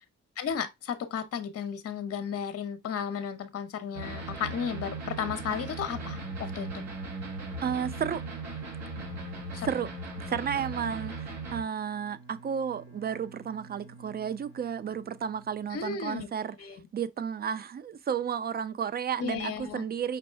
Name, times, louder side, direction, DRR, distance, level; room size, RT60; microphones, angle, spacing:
voice 1, 0.4-6.8 9.5-9.7 15.7-16.3 16.6-16.8 19.2-19.9, left 7 dB, 50° left, 0.9 m, -34 dB
sound 1, 3.9-11.6, right 2 dB, 65° right, 2.5 m, -38 dB
voice 2, 7.6-8.2 9.6-9.9 10.2-16.6 16.9-20.2, right 7 dB, 30° right, 0.5 m, -32 dB
Bowed string instrument, 11.6-16.3, right 4 dB, 50° right, 3.6 m, -53 dB
5.3 x 2.1 x 4.4 m
cardioid pair, 90°, 30 cm